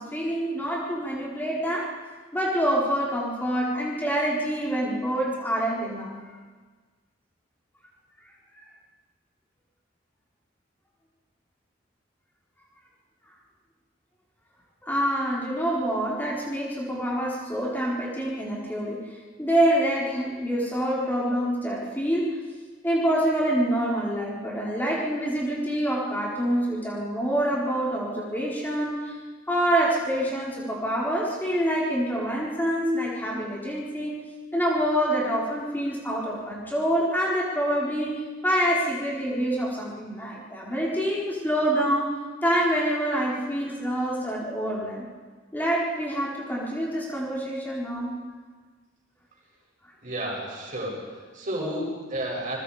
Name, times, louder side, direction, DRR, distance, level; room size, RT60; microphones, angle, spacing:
voice 1, 0.0-1.9 2.3-6.1 14.8-19.0 19.4-22.4 22.8-29.2 29.5-34.2 34.5-38.1 38.4-42.1 42.4-45.0 45.5-48.2 51.6-51.7, right 1 dB, 10° left, -5 dB, 4.2 m, -26 dB
voice 2, 50.0-52.6, right 1 dB, 45° right, -3 dB, 7.9 m, -32 dB
29.0 x 21.5 x 5.1 m, 1.4 s
head